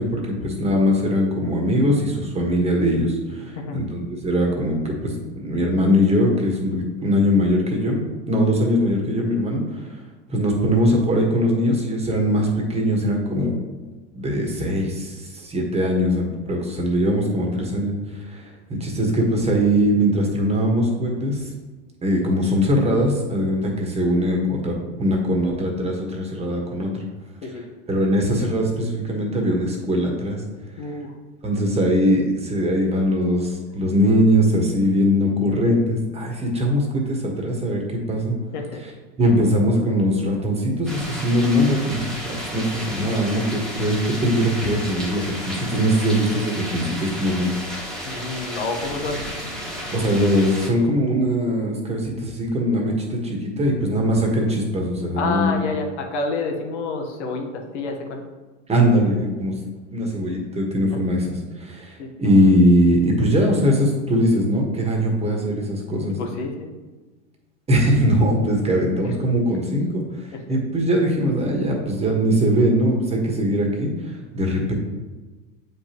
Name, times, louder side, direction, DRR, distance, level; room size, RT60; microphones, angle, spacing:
voice 1, 0.0-5.1 5.4-8.0 8.3-9.9 10.3-13.6 14.1-21.4 22.0-27.0 27.4-27.6 27.9-30.4 31.4-38.3 38.8-38.9 39.2-47.5 49.9-55.6 58.7-59.5 59.9-66.2 67.7-74.7, equal, 15° right, 0 dB, 1.5 m, -21 dB
voice 2, 30.8-31.1 38.5-38.8 48.0-49.2 55.2-58.2 62.0-62.1 66.2-66.7 70.5-70.6, left 3 dB, 60° left, 2 dB, 1.3 m, -28 dB
sound 1, 40.9-50.7, equal, ahead, 1.5 m, -32 dB
7.8 x 5.2 x 3.0 m, 1.3 s
hypercardioid pair, 105°, 38 cm